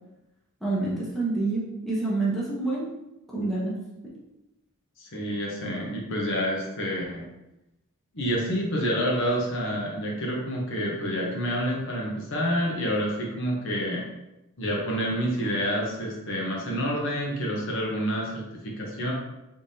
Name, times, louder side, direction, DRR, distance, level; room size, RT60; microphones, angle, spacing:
voice 1, 0.6-2.9 3.3-3.8, right 2 dB, ahead, -7 dB, 0.8 m, -27 dB
voice 2, 5.0-7.3 8.1-14.0 14.6-19.1, equal, 55° left, -2 dB, 0.9 m, -28 dB
3.5 x 3.4 x 2.7 m, 0.95 s
head